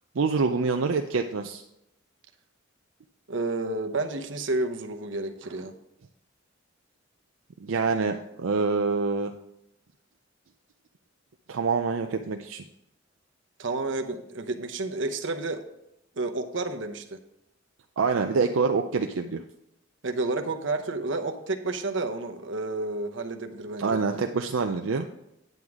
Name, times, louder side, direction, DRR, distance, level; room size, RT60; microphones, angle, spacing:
voice 1, 0.2-1.6 7.6-9.3 11.5-12.6 18.0-19.4 23.8-25.1, right 4 dB, 85° right, 5 dB, 0.5 m, -26 dB
voice 2, 3.3-5.7 13.6-15.6 16.2-17.2 20.0-24.0, right 2 dB, 65° right, 6 dB, 0.9 m, -30 dB
9.1 x 8.0 x 3.6 m, 0.84 s
head